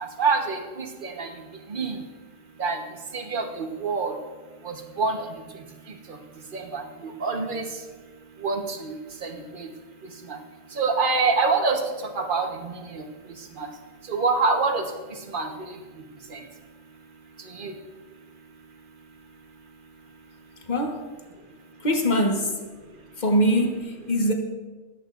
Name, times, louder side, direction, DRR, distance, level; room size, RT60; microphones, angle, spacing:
voice 1, 0.2-1.3 1.7-2.0 2.6-2.8 3.1-4.1 4.6-5.3 6.5-6.8 7.2-7.6 8.4-8.9 9.2-9.3 9.6-9.7 10.3-10.4 10.8-11.8 12.1-13.0 13.6-13.7 14.1-14.8 15.3-15.5 16.3-16.4 17.6-17.7, right 4 dB, 45° right, 3 dB, 1.3 m, -25 dB
voice 2, 20.7-21.1 21.8-22.5 23.2-24.3, equal, 40° left, 3 dB, 1.4 m, -22 dB
25.5 x 8.7 x 2.6 m, 1.4 s
omnidirectional pair, 1.2 m